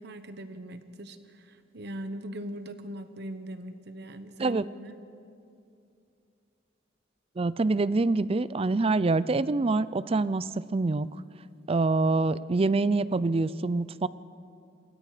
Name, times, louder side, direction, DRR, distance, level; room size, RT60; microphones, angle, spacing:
voice 1, 0.0-4.9, equal, 60° right, 10 dB, 1.2 m, -40 dB
voice 2, 7.4-11.1 11.7-14.1, right 3 dB, 30° right, 18 dB, 0.4 m, -25 dB
27.0 x 22.0 x 5.0 m, 2.6 s
head